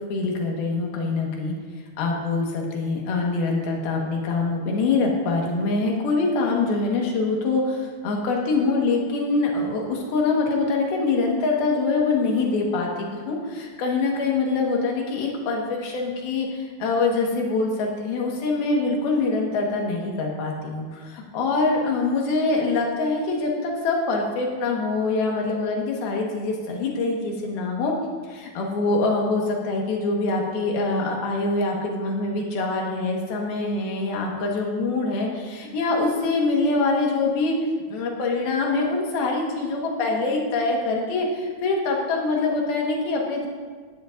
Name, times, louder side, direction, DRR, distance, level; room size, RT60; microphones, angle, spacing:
voice 1, 0.1-1.5 2.0-27.9 28.3-37.6 37.9-43.5, left 3 dB, 70° left, 0 dB, 3.2 m, -24 dB
15.5 x 10.5 x 2.5 m, 1.5 s
omnidirectional pair, 4.7 m